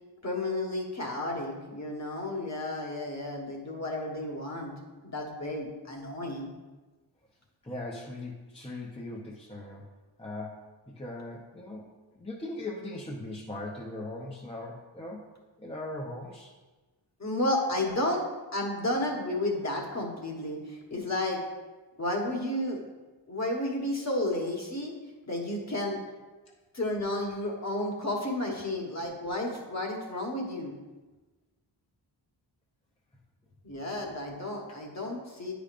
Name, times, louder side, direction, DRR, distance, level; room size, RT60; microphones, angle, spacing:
voice 1, 0.2-4.7 5.0-6.5 17.2-18.2 18.5-21.4 22.0-22.8 23.3-24.9 25.3-26.0 26.7-30.7 33.6-35.5, left 1 dB, 35° left, 0 dB, 1.3 m, -32 dB
voice 2, 7.6-9.8 10.2-11.9 12.1-15.2 15.6-16.5 17.8-17.9 26.5-26.6, left 2 dB, 15° left, -3 dB, 0.7 m, -39 dB
9.6 x 5.1 x 2.5 m, 1.2 s
wide cardioid pair, 110°, 45 cm